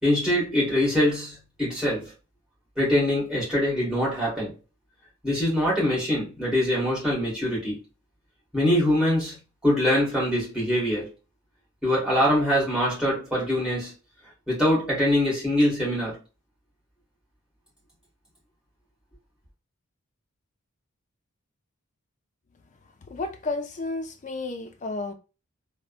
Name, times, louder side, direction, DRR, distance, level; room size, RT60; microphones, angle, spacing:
voice 1, 0.0-2.1 2.8-4.5 5.2-7.8 8.5-11.1 11.8-13.9 14.5-16.2, left 1 dB, 5° right, 1.5 m, -23 dB
voice 2, 23.0-25.1, left 3 dB, 35° left, 0.4 m, -32 dB
3.3 x 2.1 x 2.4 m
head